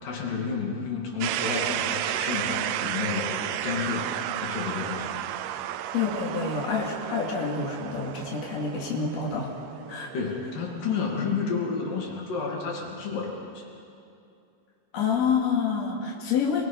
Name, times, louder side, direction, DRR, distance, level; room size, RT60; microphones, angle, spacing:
voice 1, 0.0-4.1 4.4-5.2 10.1-13.7, left 5 dB, 80° left, -2 dB, 4.4 m, -31 dB
sound 1, 1.2-11.0, right 12 dB, 85° right, 2.3 m, -32 dB
voice 2, 5.9-9.5 9.9-10.1 14.9-16.6, left 6 dB, 55° left, -3 dB, 3.5 m, -27 dB
28.5 x 22.0 x 5.4 m, 2.6 s
omnidirectional pair, 3.7 m